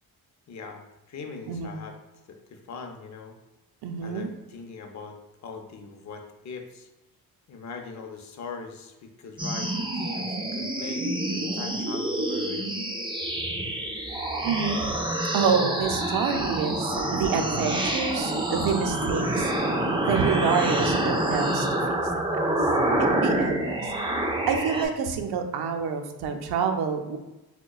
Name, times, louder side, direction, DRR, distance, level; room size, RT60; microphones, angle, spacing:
voice 1, 0.5-2.0 2.3-3.3 4.0-5.2 5.4-6.9 7.5-12.7, left 4 dB, 45° left, 4 dB, 0.5 m, -41 dB
voice 2, 1.5-1.8 3.8-4.3 14.4-14.9 15.3-19.5 20.0-22.0 22.3-22.4 23.2-23.9 24.5-27.2, right 6 dB, 80° right, 5 dB, 0.5 m, -27 dB
sound 1, 9.4-24.8, right 1 dB, 15° right, 0.4 m, -27 dB
4.6 x 2.2 x 2.3 m, 1.0 s
cardioid pair, 95°, 38 cm